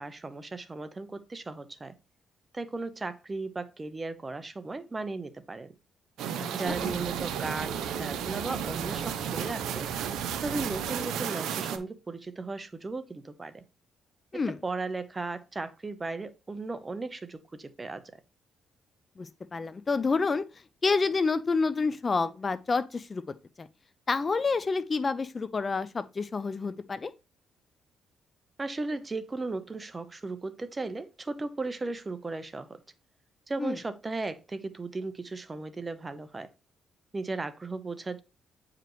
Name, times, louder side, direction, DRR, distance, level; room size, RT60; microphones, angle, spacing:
voice 1, 0.0-1.9 2.5-5.7 6.5-9.9 10.4-13.6 14.5-18.2 28.6-32.8 33.5-36.5 37.1-38.2, right 3 dB, 25° right, 0.9 m, -36 dB
sound 1, 6.2-11.8, right 8 dB, 85° right, 0.8 m, -33 dB
sound 2, 6.7-11.1, equal, 5° left, 2.6 m, -45 dB
voice 2, 19.2-20.4 20.8-23.7 24.1-27.1 33.6-33.8, left 4 dB, 35° left, 0.5 m, -28 dB
9.0 x 5.0 x 3.1 m
cardioid pair, 90°, 0 cm